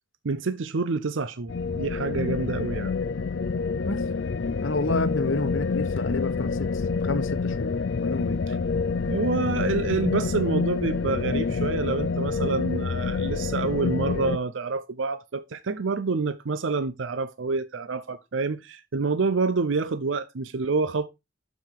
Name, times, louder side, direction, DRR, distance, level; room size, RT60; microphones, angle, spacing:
voice 1, 0.2-2.9 8.5-8.6 9.1-21.1, right 4 dB, 80° right, 0.6 m, -27 dB
sound 1, 1.5-14.4, left 4 dB, 70° left, 0.5 m, -27 dB
voice 2, 4.6-6.7 7.0-7.7 8.0-8.4, left 2 dB, 85° left, 1.1 m, -29 dB
7.0 x 6.2 x 4.8 m
head